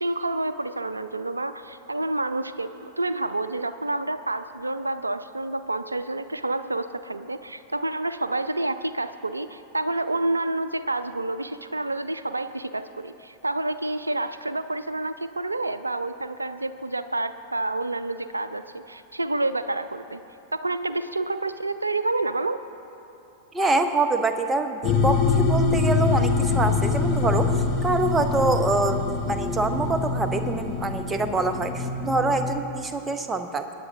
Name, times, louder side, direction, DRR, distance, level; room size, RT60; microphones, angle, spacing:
voice 1, 0.0-20.2 20.5-22.6, right 2 dB, 80° right, 12 dB, 0.4 m, -29 dB
voice 2, 23.5-33.7, right 3 dB, 15° right, 8 dB, 0.7 m, -25 dB
sound 1, 24.8-32.5, left 4 dB, 40° left, 1.2 m, -24 dB
22.5 x 9.6 x 2.7 m, 2.8 s
figure-of-eight pair, 90°, 0 cm